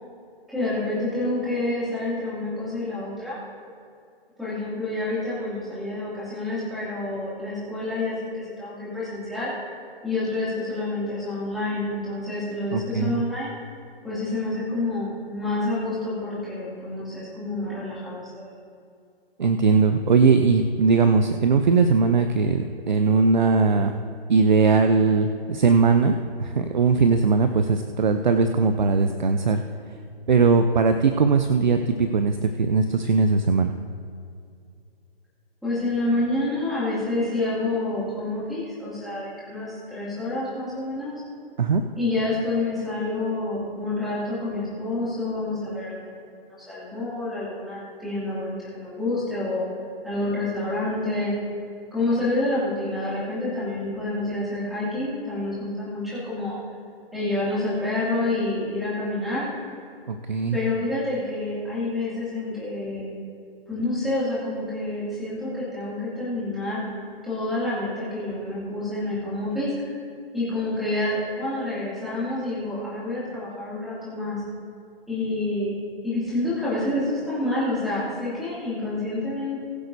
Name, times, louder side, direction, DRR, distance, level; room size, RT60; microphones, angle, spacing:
voice 1, 0.5-3.4 4.4-9.5 10.0-13.5 14.0-18.5 35.6-41.1 41.9-46.3 46.7-49.6 50.0-51.3 51.9-56.5 57.1-59.5 60.5-63.1 63.7-66.8 67.2-70.0 70.3-74.4 75.1-75.7 76.0-79.6, left 2 dB, ahead, -11 dB, 2.4 m, -28 dB
voice 2, 12.7-13.2 19.4-23.9 24.3-26.1 26.4-29.6 30.3-33.7 41.6-41.8 60.1-60.6, right 4 dB, 50° right, 7 dB, 0.6 m, -20 dB
20.5 x 8.0 x 2.7 m, 2.4 s
hypercardioid pair, 170°, 30 cm